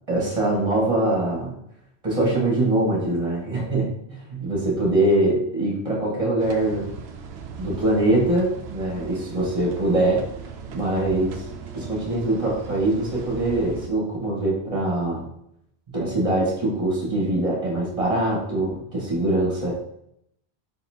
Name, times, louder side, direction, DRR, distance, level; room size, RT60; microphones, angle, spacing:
voice 1, 0.1-1.5 2.0-3.9 4.3-7.0 7.6-10.2 10.7-11.4 11.7-15.3 15.9-19.7, right 1 dB, 30° right, -3 dB, 1.5 m, -23 dB
sound 1, 6.4-13.9, right 6 dB, 75° right, 0.8 m, -38 dB
4.1 x 4.1 x 2.8 m, 0.74 s
omnidirectional pair, 1.1 m